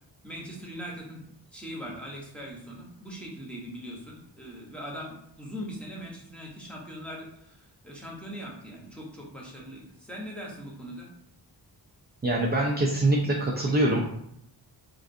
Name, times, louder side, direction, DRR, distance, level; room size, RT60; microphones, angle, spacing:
voice 1, 0.2-1.2 1.5-11.1, equal, 5° left, -3 dB, 0.8 m, -41 dB
voice 2, 12.2-14.0, right 1 dB, 25° right, -1 dB, 0.4 m, -24 dB
4.5 x 2.4 x 2.5 m, 0.74 s
wide cardioid pair, 140°, 43 cm